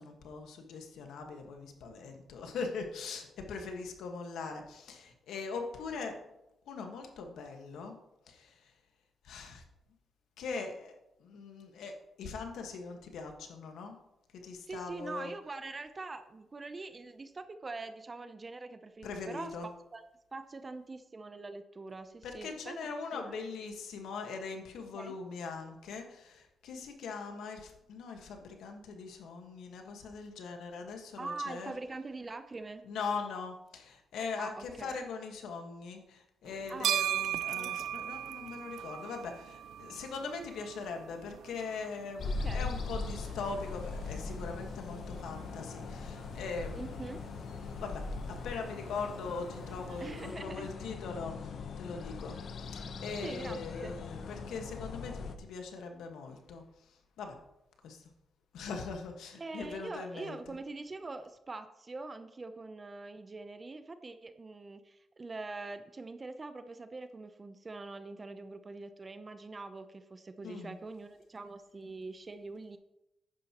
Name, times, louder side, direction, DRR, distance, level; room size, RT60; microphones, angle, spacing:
voice 1, 0.0-6.2 6.6-7.9 8.3-8.7 9.2-9.6 10.4-10.9 11.2-13.9 14.4-15.3 19.0-19.7 22.2-31.7 32.8-47.0 47.8-56.6 57.2-57.4 57.8-58.1 58.5-60.4 70.4-70.8, left 4 dB, 85° left, 4 dB, 1.5 m, -41 dB
voice 2, 14.7-19.6 19.9-20.0 20.3-22.8 23.1-23.5 24.9-25.2 31.2-32.8 34.4-35.0 36.7-37.0 37.6-37.9 42.3-42.7 46.7-47.3 50.0-50.7 53.2-54.0 59.4-72.8, right 3 dB, 30° right, 9 dB, 0.6 m, -43 dB
sound 1, 36.5-50.3, right 11 dB, 85° right, 0.3 m, -40 dB
sound 2, 42.2-55.4, left 4 dB, 65° left, 0.9 m, -40 dB
10.5 x 9.1 x 3.0 m, 0.88 s
cardioid pair, 95°, 0 cm